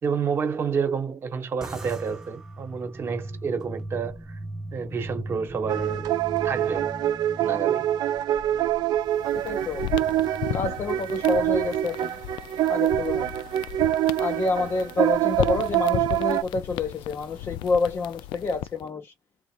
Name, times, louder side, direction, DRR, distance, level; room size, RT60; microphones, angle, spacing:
voice 1, 0.0-4.4 4.7-6.2 6.4-6.9 7.4-7.9, right 6 dB, 30° right, 1.1 m, -29 dB
sound 1, 1.6-12.2, right 1 dB, 5° right, 0.7 m, -40 dB
sound 2, 5.7-16.4, right 13 dB, 60° right, 0.6 m, -25 dB
sound 3, 9.1-18.9, left 14 dB, 85° left, 0.4 m, -36 dB
voice 2, 9.4-9.8 10.5-12.2 12.7-13.3 14.2-19.1, left 3 dB, 30° left, 0.7 m, -28 dB
3.9 x 2.0 x 4.4 m
cardioid pair, 175°, 8 cm